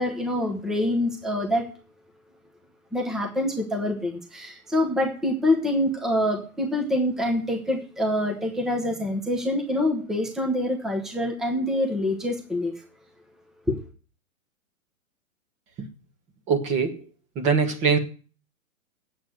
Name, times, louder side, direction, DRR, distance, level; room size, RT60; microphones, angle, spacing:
voice 1, 0.0-1.7 2.9-12.7 13.7-13.8, left 1 dB, ahead, 0.9 m, -25 dB
voice 2, 16.5-17.0 17.3-18.0, right 5 dB, 15° right, 1.3 m, -22 dB
8.6 x 7.9 x 8.7 m
hypercardioid pair, 155°, 42 cm